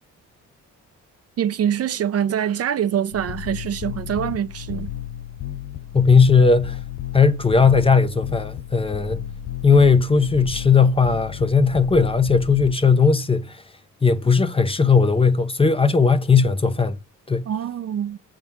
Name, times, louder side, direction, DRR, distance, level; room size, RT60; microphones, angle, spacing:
voice 1, 1.4-4.9 17.5-18.2, right 9 dB, 55° right, 0.7 m, -24 dB
sound 1, 3.1-12.7, left 10 dB, 70° left, 0.6 m, -33 dB
voice 2, 5.9-6.8 7.1-9.2 9.6-13.6 14.0-17.0 17.3-17.5, left 5 dB, 20° left, 0.7 m, -17 dB
6.7 x 3.7 x 6.0 m
cardioid pair, 90°, 30 cm